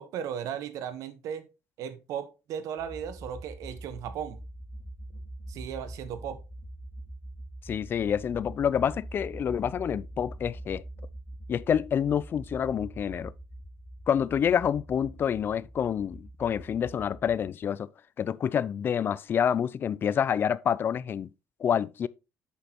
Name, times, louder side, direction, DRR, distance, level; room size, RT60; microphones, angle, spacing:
voice 1, 0.0-1.5 1.8-4.4 5.5-6.4, right 8 dB, 80° right, 1.1 m, -36 dB
sound 1, 2.8-17.5, right 1 dB, 60° left, 2.6 m, -44 dB
voice 2, 7.7-10.8 11.5-13.3 14.1-17.9 18.2-21.3 21.6-22.1, left 8 dB, 40° left, 0.3 m, -27 dB
8.4 x 6.2 x 2.9 m
cardioid pair, 135°, 6 cm